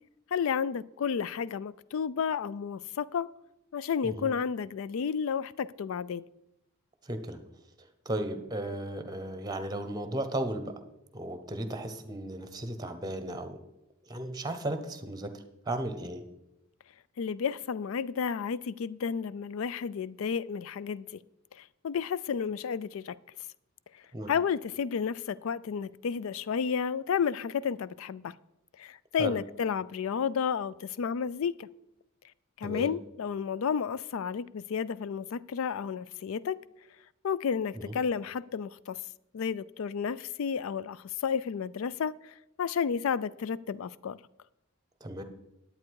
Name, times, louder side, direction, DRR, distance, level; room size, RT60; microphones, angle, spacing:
voice 1, 0.3-3.3 3.7-6.3 17.2-21.1 21.5-23.2 24.3-28.3 28.8-31.7 32.6-36.6 37.2-39.0 39.3-44.2, left 6 dB, 65° left, 0.3 m, -32 dB
voice 2, 7.0-7.4 7.8-10.8 11.1-13.6 14.0-16.2 24.1-24.3 29.2-29.4 32.6-32.9 37.7-37.9 45.0-45.2, right 1 dB, 20° right, 0.9 m, -35 dB
10.5 x 8.6 x 4.7 m
head